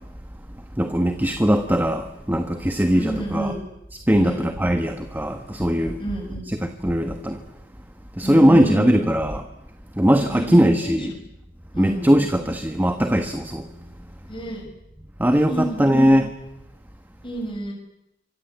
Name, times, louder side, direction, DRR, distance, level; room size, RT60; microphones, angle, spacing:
voice 1, 0.8-3.5 4.1-6.0 6.5-7.4 8.2-9.4 10.0-11.1 11.8-13.7 15.2-16.3, equal, 10° right, 1.4 m, -20 dB
voice 2, 2.9-3.6 4.1-4.5 6.0-6.5 8.2-9.0 10.3-11.1 11.7-12.1 14.3-14.6 15.5-16.1 17.2-17.7, right 1 dB, 30° left, 7.1 m, -29 dB
27.5 x 25.5 x 8.2 m
head